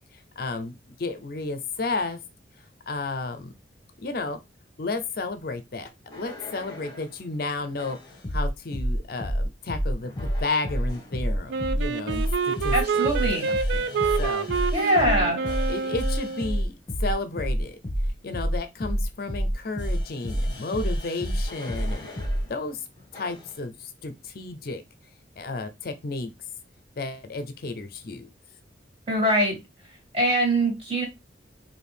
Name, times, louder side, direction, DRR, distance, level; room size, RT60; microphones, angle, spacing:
voice 1, 0.1-2.2 2.9-3.5 4.0-4.4 4.8-8.0 8.3-10.1 10.4-12.7 13.2-13.9 14.2-14.5 15.0-15.2 15.7-17.8 18.2-22.8 23.1-24.8 25.4-26.3 27.0-28.3, left 3 dB, 50° left, 0.5 m, -32 dB
sound 1, 6.1-7.1 7.8-22.5 23.1-23.5, equal, 25° left, 1.0 m, -29 dB
Wind instrument woodwind instrument, 11.5-16.6, right 5 dB, 75° right, 0.3 m, -28 dB
voice 2, 12.7-13.5 14.7-15.4 29.1-29.6 30.1-31.1, right 1 dB, 30° right, 2.3 m, -23 dB
4.4 x 2.6 x 3.3 m
head